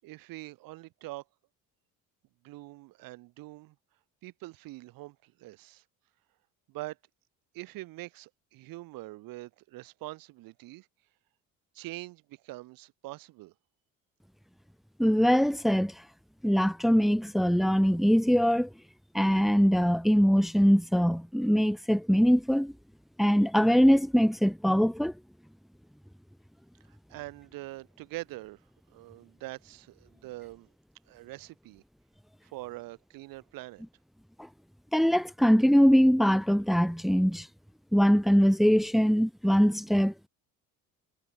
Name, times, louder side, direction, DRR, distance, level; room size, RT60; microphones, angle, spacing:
voice 1, 0.0-1.2 2.4-3.8 4.2-5.8 6.7-7.0 7.5-10.9 11.7-13.5 26.9-28.6 28.9-30.7 31.1-31.8 32.4-33.9, right 19 dB, 85° right, 5.7 m, -44 dB
voice 2, 15.0-15.9 16.4-18.7 19.1-22.7 23.2-25.1 34.9-37.5 37.9-40.1, equal, ahead, 0.7 m, -22 dB
cardioid pair, 130°, 33 cm